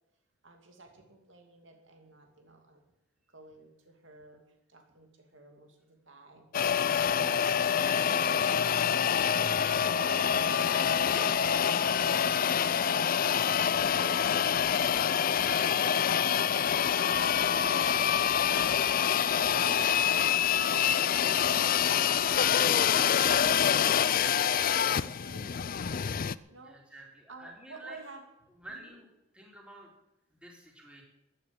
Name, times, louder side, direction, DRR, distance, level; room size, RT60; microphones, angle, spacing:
voice 1, 0.4-2.8 3.3-4.4 4.7-6.5 7.1-9.3 10.5-14.6 15.0-15.2 15.5-25.8 26.5-28.2 28.7-29.0, right 2 dB, 70° right, 4 dB, 2.5 m, -52 dB
sound 1, 6.5-26.3, left 8 dB, 45° left, 0.4 m, -26 dB
voice 2, 15.4-15.7 19.7-20.3 26.6-28.0 28.6-29.1 29.3-29.9 30.4-31.0, right 2 dB, 5° right, -1 dB, 3.9 m, -48 dB
sound 2, 25.6-26.2, right 2 dB, 50° right, 5.5 m, -62 dB
15.0 x 9.8 x 8.8 m, 0.89 s
head